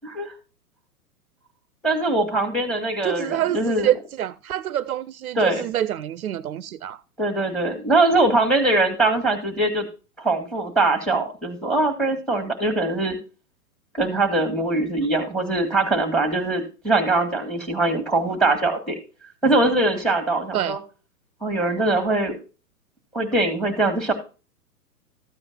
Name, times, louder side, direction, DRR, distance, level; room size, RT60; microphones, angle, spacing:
voice 1, 0.0-0.3 1.8-3.9 5.4-5.6 7.2-9.9 10.2-13.2 13.9-19.0 19.4-20.8 21.4-22.4 23.1-24.1, right 2 dB, ahead, 2.2 m, -22 dB
voice 2, 3.0-7.0 20.5-20.8, right 12 dB, 65° right, 0.6 m, -26 dB
14.0 x 8.6 x 2.7 m
hypercardioid pair, 120°, 46 cm